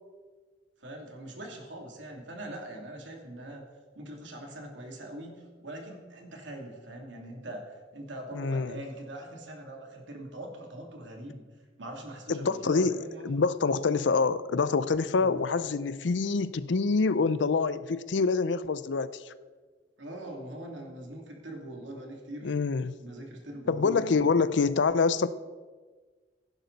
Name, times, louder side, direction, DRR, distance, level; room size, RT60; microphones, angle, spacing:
voice 1, 0.8-3.6 3.9-11.5 11.8-13.4 15.2-15.4 20.0-22.5 23.0-24.4, right 1 dB, 80° right, 1 dB, 2.8 m, -42 dB
voice 2, 8.3-8.8 12.3-19.3 22.4-22.9 23.7-25.3, left 4 dB, 70° left, 15 dB, 0.5 m, -26 dB
16.0 x 11.0 x 4.1 m, 1.4 s
head